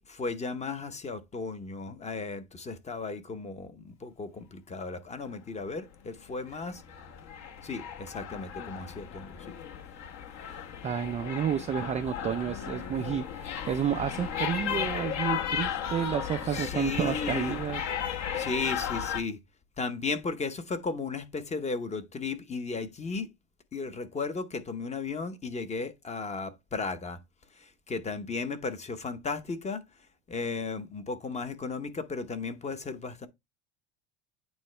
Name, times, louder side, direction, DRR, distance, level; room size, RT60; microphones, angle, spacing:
voice 1, 0.0-6.8 7.6-9.5 16.5-17.6 18.4-19.4 19.8-23.3 23.7-27.2 27.6-29.8 30.3-33.3, left 4 dB, 20° left, 0.8 m, -35 dB
sound 1, 6.0-19.2, left 8 dB, 45° left, 1.0 m, -35 dB
voice 2, 10.8-17.8, right 9 dB, 20° right, 0.3 m, -31 dB
8.9 x 3.7 x 3.1 m
supercardioid pair, 125°, 37 cm